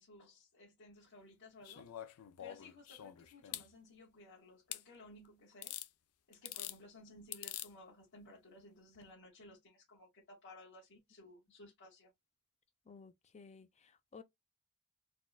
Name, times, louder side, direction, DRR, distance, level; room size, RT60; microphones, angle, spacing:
voice 1, 0.0-2.0 2.4-5.8 6.3-12.1, left 2 dB, 55° left, 1.3 m, -57 dB
sound 1, 1.6-3.7 4.7-4.8 5.6-5.9 6.3-6.8 7.3-7.7 8.9-9.0, left 13 dB, 85° left, 0.4 m, -45 dB
voice 2, 12.9-14.2, left 5 dB, 30° left, 0.5 m, -56 dB
4.2 x 2.2 x 2.3 m
head